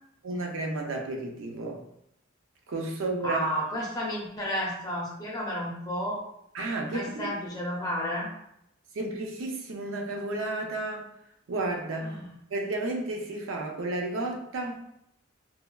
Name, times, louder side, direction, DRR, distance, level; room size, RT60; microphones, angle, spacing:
voice 1, 0.2-1.8 2.7-3.5 6.5-7.3 8.9-11.1 11.5-12.2 12.5-14.8, right 2 dB, 70° right, 1 dB, 0.5 m, -32 dB
voice 2, 3.2-6.2 6.9-8.3 12.0-12.3, equal, 20° left, -3 dB, 0.6 m, -32 dB
3.1 x 2.3 x 2.2 m, 0.77 s
head